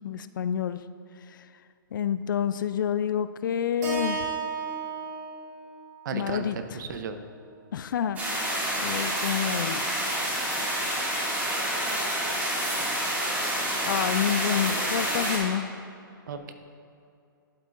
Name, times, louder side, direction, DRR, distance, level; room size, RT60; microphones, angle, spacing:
voice 1, 0.0-0.8 1.3-1.4 1.9-4.3 6.1-6.6 7.7-8.5 8.8-10.3 13.9-15.7, left 9 dB, 65° left, 13 dB, 0.4 m, -28 dB
Keyboard (musical), 3.8-8.0, right 5 dB, 30° right, 1.9 m, -36 dB
voice 2, 6.0-6.4 6.7-7.2 16.3-16.5, right 6 dB, 55° right, 8 dB, 0.7 m, -34 dB
sound 1, 8.2-15.4, right 1 dB, 15° right, 2.1 m, -28 dB
11.5 x 8.1 x 2.5 m, 2.5 s
hypercardioid pair, 125°, 12 cm